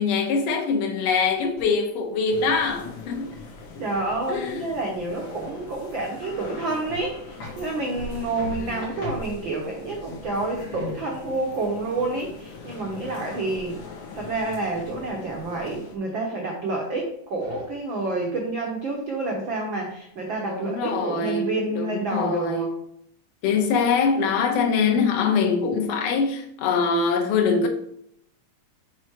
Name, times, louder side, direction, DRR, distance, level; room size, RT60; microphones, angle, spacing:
voice 1, 0.0-3.3 3.8-3.9 4.3-4.7 8.6-9.1 20.5-22.7 23.4-27.7, left 5 dB, 80° left, 2.5 m, -23 dB
sound 1, 1.2-2.0 2.4-5.0 5.2-5.3 5.8-6.6 6.9-15.4 17.0-17.1 17.4-18.2 18.6-19.2, left 1 dB, 45° left, 2.9 m, -42 dB
sound 2, 2.3-16.0, left 4 dB, 60° left, 1.6 m, -42 dB
voice 2, 3.8-13.8 14.1-22.7, right 2 dB, 90° right, 1.0 m, -29 dB
6.1 x 4.4 x 4.7 m
omnidirectional pair, 3.8 m